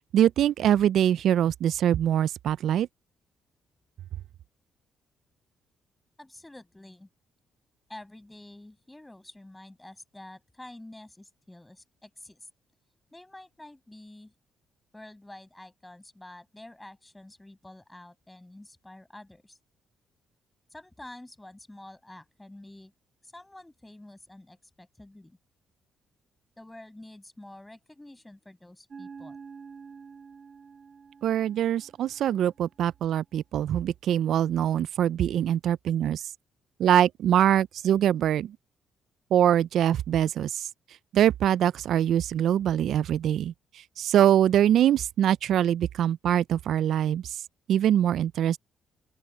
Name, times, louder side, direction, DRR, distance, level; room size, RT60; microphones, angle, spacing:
voice 1, 0.1-2.9 31.2-36.2 36.8-38.6 39.3-40.7 41.1-43.5 44.0-47.4 47.7-48.6, right 10 dB, 75° right, 0.3 m, -23 dB
voice 2, 6.2-7.1 7.9-12.5 13.1-14.3 14.9-19.6 20.7-22.9 23.2-25.4 26.6-29.4, left 1 dB, 10° left, 6.3 m, -48 dB
sound 1, 28.9-33.1, right 5 dB, 40° right, 7.6 m, -48 dB
open air
cardioid pair, 90°, 0 cm